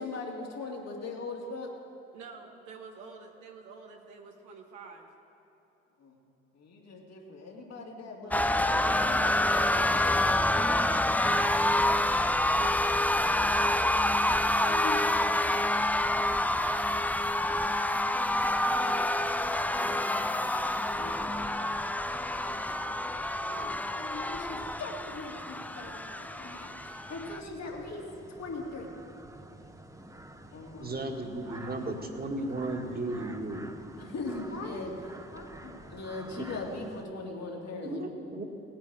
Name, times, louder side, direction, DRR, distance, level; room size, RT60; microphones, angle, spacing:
voice 1, 0.0-1.7 6.0-6.2 6.5-11.0 14.7-15.1 15.9-16.1 18.8-20.0 20.9-21.4 22.2-28.0 28.4-28.9 30.5-31.2 31.4-31.5 34.0-38.1, left 3 dB, 55° left, -1 dB, 2.7 m, -41 dB
voice 2, 2.1-5.1 22.7-22.8 31.4-33.4, right 4 dB, 75° right, 0 dB, 1.4 m, -49 dB
sound 1, 8.3-27.4, left 1 dB, 5° left, 0.5 m, -27 dB
sound 2, 19.2-37.1, right 1 dB, 10° right, 1.2 m, -50 dB
voice 3, 30.8-33.7 36.4-36.5 37.8-38.4, right 2 dB, 30° right, 3 dB, 2.0 m, -35 dB
18.0 x 9.4 x 4.9 m, 3.0 s
hypercardioid pair, 45°, 31 cm